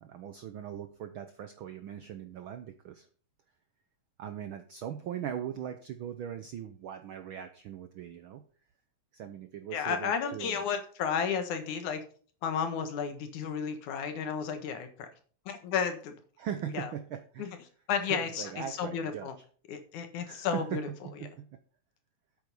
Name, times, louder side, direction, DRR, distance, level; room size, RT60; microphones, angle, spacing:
voice 1, 0.0-3.1 4.2-8.4 9.1-10.6 16.4-17.5 18.0-19.3 20.3-20.8 21.4-21.5, right 9 dB, 80° right, 9 dB, 1.1 m, -40 dB
voice 2, 9.7-12.0 12.4-15.1 15.5-16.1 16.7-16.9 17.4-17.6 17.9-19.4 19.7-20.9 21.2-21.3, left 7 dB, 85° left, 8 dB, 2.9 m, -32 dB
8.9 x 8.0 x 5.4 m, 0.43 s
omnidirectional pair, 3.3 m